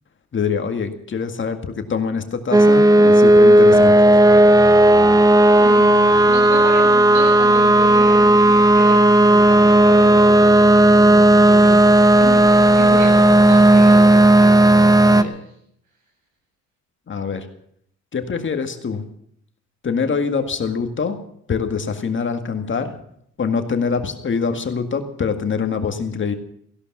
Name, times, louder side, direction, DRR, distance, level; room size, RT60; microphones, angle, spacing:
voice 1, 0.3-3.9 17.1-17.5 18.1-19.0 19.8-21.2 21.5-22.9 23.4-26.3, left 5 dB, 40° left, 6 dB, 2.0 m, -24 dB
sound 1, 2.5-15.2, right 1 dB, 10° right, 1.0 m, -12 dB
voice 2, 5.6-15.3, right 2 dB, 85° right, 2 dB, 6.8 m, -31 dB
16.0 x 11.5 x 7.4 m, 0.69 s
cardioid pair, 90°, 30 cm